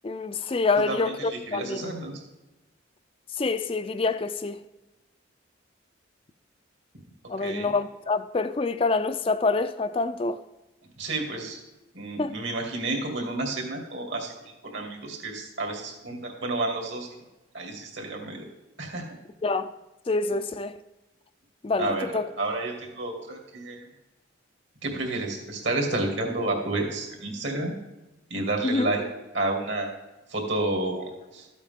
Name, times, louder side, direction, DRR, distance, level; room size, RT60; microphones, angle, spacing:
voice 1, 0.0-1.9 3.4-4.6 7.3-10.4 12.2-12.4 19.4-19.7 20.1-20.8 21.6-22.3 28.6-28.9, left 3 dB, 30° left, 0.3 m, -26 dB
voice 2, 0.9-2.2 7.4-7.7 11.0-11.6 11.9-14.3 14.6-17.2 17.5-18.4 18.8-19.0 21.8-23.9 24.8-27.8 28.3-29.0 29.3-29.9 30.3-31.5, right 2 dB, 65° right, 2.4 m, -30 dB
13.0 x 8.3 x 3.6 m
head